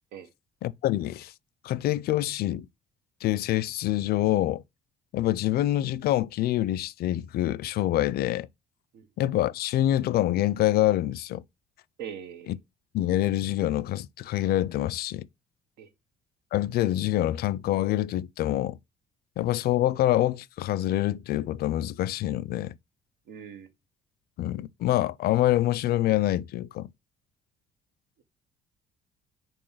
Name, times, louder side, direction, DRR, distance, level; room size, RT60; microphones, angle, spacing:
voice 1, 0.6-1.3 1.6-2.7 3.2-4.6 5.1-8.5 9.2-11.4 12.5-12.6 12.9-15.3 16.5-18.8 19.4-22.8 24.4-26.9, left 14 dB, 65° left, 0.5 m, -26 dB
voice 2, 12.0-12.6 15.8-15.9 23.3-23.7, right 8 dB, 80° right, 1.2 m, -41 dB
5.4 x 4.5 x 5.6 m
cardioid pair, 110°, 17 cm